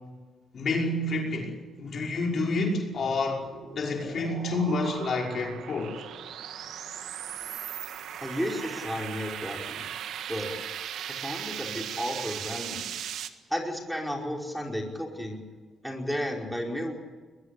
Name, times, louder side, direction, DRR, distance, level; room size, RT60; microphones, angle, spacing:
voice 1, 0.5-3.5 3.7-6.1, left 2 dB, 55° left, 0 dB, 5.6 m, -29 dB
sound 1, 3.0-13.3, right 9 dB, 75° right, 1.7 m, -38 dB
voice 2, 8.2-9.9 10.3-10.5 11.2-12.9 13.5-15.4 15.8-16.9, equal, ahead, 1 dB, 5.1 m, -33 dB
22.0 x 21.5 x 8.4 m, 1.3 s
cardioid pair, 90°, 0 cm